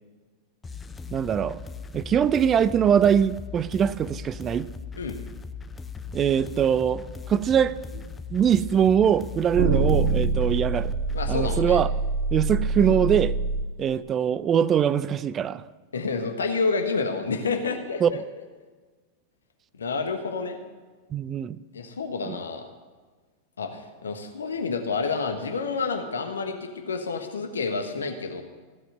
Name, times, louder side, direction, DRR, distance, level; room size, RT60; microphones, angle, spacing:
sound 1, 0.6-11.6, left 5 dB, 15° left, 0.7 m, -39 dB
voice 1, 1.1-1.6 1.9-4.7 6.1-7.7 8.3-10.9 11.3-11.9 12.3-13.3 13.8-15.6 18.0-18.1 21.1-21.6 22.3-22.4, right 8 dB, 25° right, 0.5 m, -22 dB
sound 2, 7.9-8.0 9.5-13.6, right 3 dB, 55° right, 1.7 m, -25 dB
voice 2, 11.1-11.8 12.9-13.0 15.9-18.2 19.8-20.6 21.7-22.6 23.6-28.4, left 4 dB, 70° left, 1.3 m, -29 dB
15.0 x 7.8 x 7.8 m
figure-of-eight pair, 90°, 0 cm